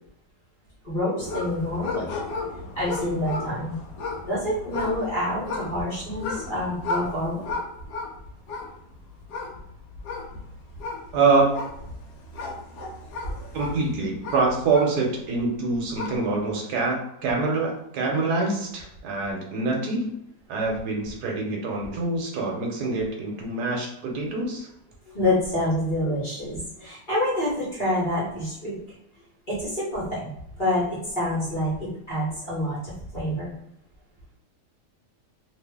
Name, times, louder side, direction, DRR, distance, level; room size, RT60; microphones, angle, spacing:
voice 1, 0.8-2.1 2.7-3.8 4.2-7.4 12.3-12.4 13.2-13.5 19.2-19.3 24.2-24.3 25.1-28.7 29.5-30.3 30.6-33.5, left 1 dB, 35° left, -9 dB, 1.0 m, -27 dB
sound 1, 1.2-15.4 15.7-16.4, left 3 dB, 75° left, 1.2 m, -35 dB
voice 2, 11.1-11.6 13.5-20.1 20.5-24.7, right 3 dB, 75° right, 0 dB, 1.2 m, -25 dB
2.7 x 2.5 x 3.4 m, 0.79 s
omnidirectional pair, 1.8 m